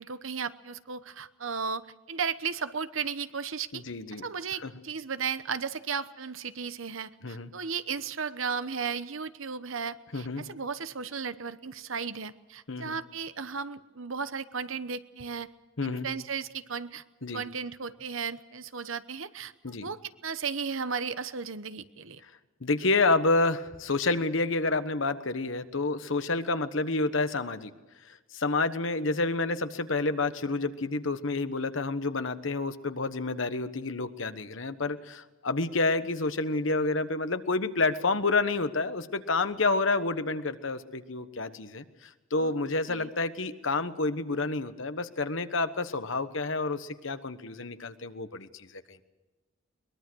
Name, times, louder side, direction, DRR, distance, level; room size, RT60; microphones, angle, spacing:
voice 1, 0.0-3.8 4.1-15.5 15.8-17.0 17.3-19.5 19.8-22.2 42.4-42.5 42.9-43.1, right 6 dB, 75° right, 12 dB, 1.0 m, -35 dB
voice 2, 3.7-4.3 4.6-4.7 7.2-7.5 10.1-10.4 12.7-13.0 15.8-16.1 17.2-17.4 19.6-19.9 22.6-27.7 28.1-49.0, left 3 dB, 65° left, 11 dB, 1.2 m, -29 dB
22.5 x 21.5 x 6.3 m, 1.2 s
head